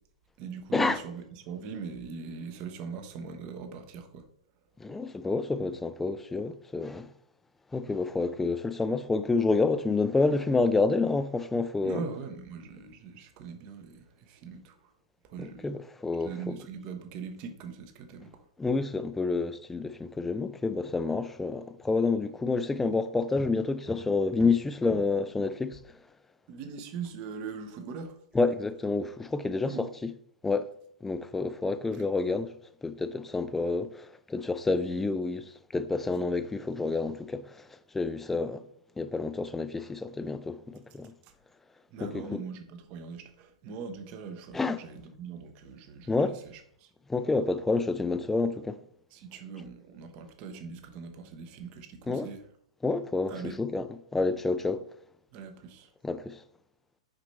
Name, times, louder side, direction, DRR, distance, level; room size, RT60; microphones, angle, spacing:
voice 1, 0.4-4.3 11.8-14.9 15.2-15.7 16.2-18.4 26.5-28.2 29.6-29.9 34.7-34.8 41.2-41.3 41.9-46.9 49.1-52.4 53.3-53.6 55.3-55.9, right 5 dB, 35° right, 0.8 m, -41 dB
voice 2, 4.8-7.1 7.7-12.0 15.4-16.6 18.6-25.8 28.3-30.1 30.4-30.7 31.0-32.5 32.8-37.6 37.9-38.6 39.0-41.1 42.0-42.4 44.5-44.8 46.1-46.4 47.1-48.8 52.1-52.3 52.8-53.9 54.1-54.8 56.0-56.4, left 3 dB, 10° left, 0.4 m, -29 dB
6.0 x 5.0 x 3.2 m
figure-of-eight pair, 105°, 3 cm